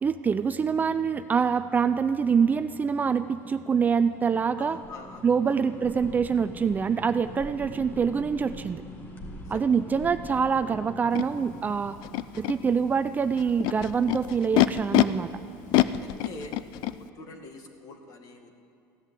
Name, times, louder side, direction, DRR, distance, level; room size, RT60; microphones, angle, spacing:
voice 1, 0.0-4.8 5.2-8.8 9.5-12.0 12.4-15.3, right 6 dB, 20° right, 11 dB, 0.4 m, -25 dB
sound 1, 0.7-16.0, left 1 dB, 25° left, 1.7 m, -46 dB
voice 2, 4.6-5.2 9.4-9.7 15.7-16.6 17.2-18.5, left 3 dB, 50° left, 4 dB, 2.0 m, -45 dB
Animal, 11.1-11.2 12.0-12.5 13.4-15.0 15.7-16.9, left 16 dB, 70° left, 0.5 m, -24 dB
15.5 x 11.0 x 8.3 m, 2.7 s
cardioid pair, 140°, 8 cm